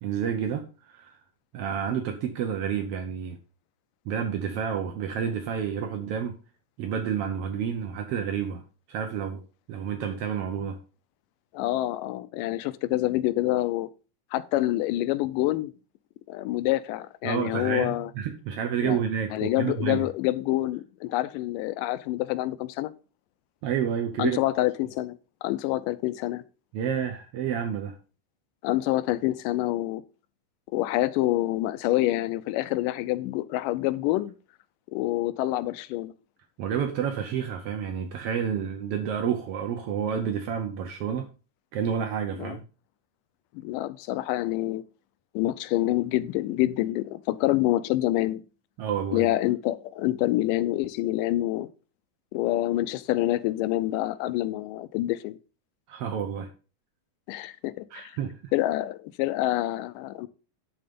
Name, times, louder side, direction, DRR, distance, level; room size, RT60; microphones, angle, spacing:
voice 1, 0.0-1.2 1.5-3.4 4.0-6.4 6.8-8.6 8.9-9.4 9.7-10.8 17.2-20.0 23.6-24.4 26.7-27.9 36.6-41.3 41.7-42.6 48.8-49.3 55.9-56.5 57.9-58.5, right 8 dB, 80° right, 1.3 m, -29 dB
voice 2, 11.5-13.9 14.3-15.7 16.3-18.1 18.8-19.0 19.3-22.9 24.2-26.4 28.6-30.0 30.7-34.3 34.9-36.1 42.4-42.6 43.5-44.8 45.4-48.4 49.1-51.7 52.3-55.4 57.3-58.1 58.5-60.3, left 16 dB, 85° left, 2.2 m, -27 dB
10.5 x 3.8 x 5.2 m
omnidirectional pair, 3.7 m